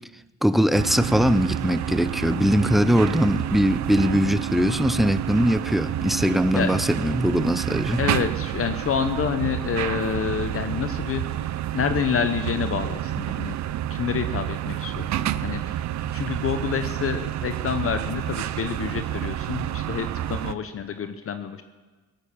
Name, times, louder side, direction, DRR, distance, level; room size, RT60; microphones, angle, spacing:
voice 1, 0.4-8.0, equal, ahead, 0.5 m, -21 dB
sound 1, 0.7-20.5, right 12 dB, 65° right, 0.6 m, -29 dB
voice 2, 8.0-11.2 11.7-13.6 13.9-15.8 16.1-21.6, left 7 dB, 50° left, 0.8 m, -28 dB
17.5 x 9.0 x 7.1 m
cardioid pair, 90°, 30 cm